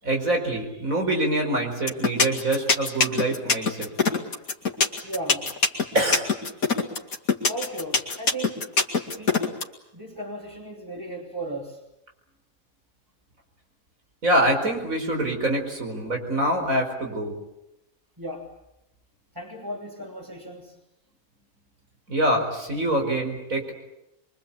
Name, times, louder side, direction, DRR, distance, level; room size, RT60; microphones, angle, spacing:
voice 1, 0.0-3.9 5.9-6.3 14.2-17.3 22.1-23.7, right 1 dB, 70° right, 3 dB, 5.3 m, -25 dB
sound 1, 1.9-9.6, left 4 dB, 75° left, 2.7 m, -21 dB
voice 2, 5.0-5.5 7.5-8.7 9.1-9.4 9.9-11.8 18.2-18.5 19.3-20.8, right 1 dB, 15° right, -3 dB, 3.1 m, -36 dB
25.5 x 23.5 x 8.7 m, 0.89 s
omnidirectional pair, 1.5 m